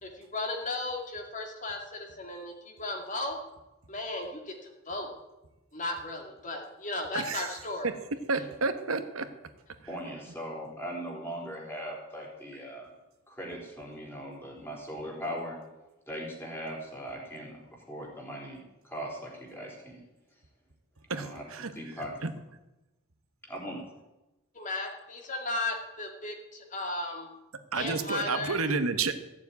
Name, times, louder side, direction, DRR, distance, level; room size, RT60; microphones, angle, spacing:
voice 1, 0.0-3.4 3.9-5.1 5.7-7.9 24.5-27.3 27.7-28.6, left 2 dB, 35° left, 2 dB, 2.4 m, -35 dB
voice 2, 7.1-7.5 7.8-7.9 8.3-9.3 21.1-21.7 22.2-22.3 27.7-29.1, right 4 dB, 80° right, 9 dB, 1.2 m, -30 dB
voice 3, 9.9-12.9 13.3-15.6 16.1-18.6 18.8-20.0 21.1-22.2 23.4-23.8, equal, 10° left, -2 dB, 3.9 m, -39 dB
14.5 x 7.3 x 9.4 m, 1.0 s
head